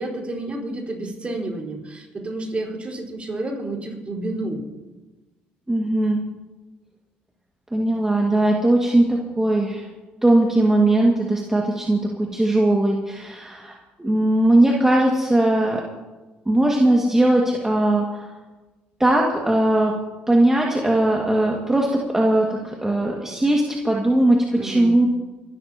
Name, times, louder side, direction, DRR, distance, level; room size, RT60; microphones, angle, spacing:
voice 1, 0.0-4.6 24.5-24.9, right 2 dB, 30° right, -1 dB, 4.7 m, -30 dB
voice 2, 5.7-6.2 7.7-9.9 10.2-15.8 16.5-18.2 19.0-20.0 20.3-25.1, right 1 dB, 10° right, -2 dB, 2.1 m, -19 dB
25.5 x 12.5 x 3.0 m, 1.2 s
supercardioid pair, 75°, 4 cm